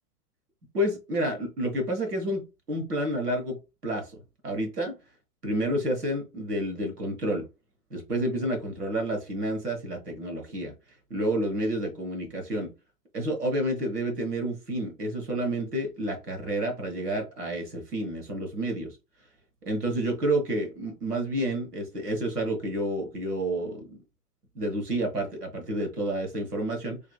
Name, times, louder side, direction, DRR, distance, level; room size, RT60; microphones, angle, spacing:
voice 1, 0.7-3.6 3.8-5.0 5.4-7.5 7.9-10.7 11.1-12.7 13.1-19.0 19.6-24.0 24.5-27.0, right 1 dB, 85° right, 1.4 m, -29 dB
3.3 x 2.9 x 2.3 m
figure-of-eight pair, 105°, 46 cm